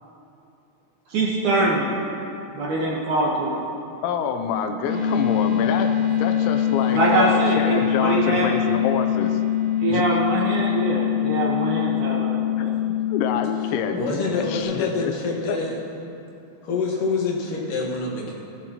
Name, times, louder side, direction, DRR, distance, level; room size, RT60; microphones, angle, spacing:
voice 1, 1.1-1.9 2.5-3.6 6.9-8.5 9.8-12.7, right 2 dB, 70° right, -4 dB, 2.0 m, -23 dB
voice 2, 4.0-9.4 9.9-10.2 13.1-15.1 15.5-15.6, left 6 dB, 90° left, 5 dB, 3.0 m, -27 dB
sound 1, 4.9-14.6, left 10 dB, 45° left, 1.3 m, -23 dB
voice 3, 14.0-15.8 16.6-18.3, left 3 dB, 60° left, -3 dB, 2.6 m, -26 dB
16.5 x 11.5 x 3.0 m, 2.8 s
omnidirectional pair, 5.3 m